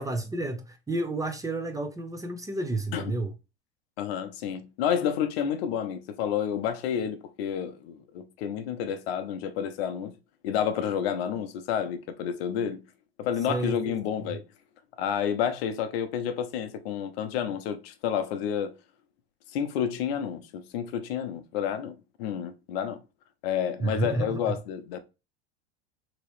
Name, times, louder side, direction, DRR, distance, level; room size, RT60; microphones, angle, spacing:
voice 1, 0.0-3.3 13.5-14.0 23.8-24.5, right 2 dB, 10° right, 0.5 m, -31 dB
voice 2, 4.0-10.1 10.4-12.8 13.2-14.4 15.0-18.8 19.5-23.0 23.4-25.0, left 8 dB, 70° left, 0.7 m, -30 dB
3.0 x 2.9 x 3.0 m
hypercardioid pair, 100°, 31 cm